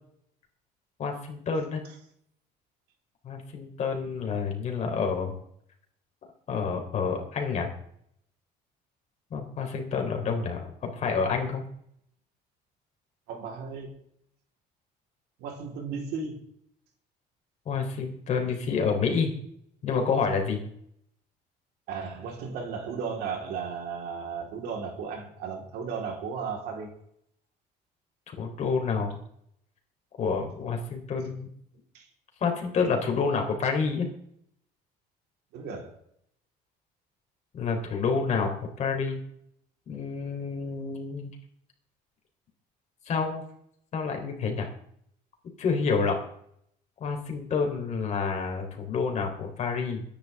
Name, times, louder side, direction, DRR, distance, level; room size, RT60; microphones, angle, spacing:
voice 1, 1.0-1.8 3.2-5.4 6.5-7.7 9.3-11.6 17.7-19.3 19.8-20.6 28.3-29.2 30.2-31.5 32.4-34.1 37.5-39.2 39.9-41.3 43.1-43.4 43.9-44.7 45.6-46.2 47.0-50.0, left 5 dB, 45° left, 3 dB, 3.6 m, -28 dB
voice 2, 13.3-14.0 15.4-16.4 21.9-26.9 31.9-32.1 35.5-36.0, right 5 dB, 80° right, 2 dB, 3.9 m, -35 dB
22.5 x 10.5 x 3.6 m, 0.69 s
cardioid pair, 150°, 17 cm